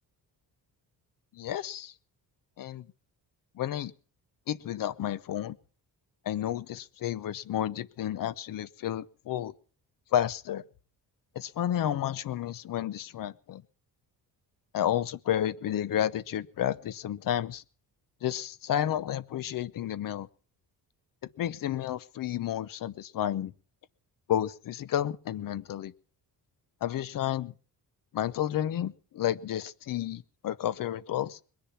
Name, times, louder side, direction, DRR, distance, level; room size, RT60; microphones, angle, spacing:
voice 1, 1.3-1.9 2.6-2.9 3.5-3.9 4.5-5.6 6.2-9.5 10.1-10.6 11.3-13.6 14.7-17.6 18.2-20.3 21.4-23.5 24.3-25.9 26.8-27.5 28.1-31.4, left 11 dB, 55° left, 17 dB, 0.8 m, -31 dB
21.5 x 10.5 x 5.7 m, 0.41 s
cardioid pair, 175°, 40 cm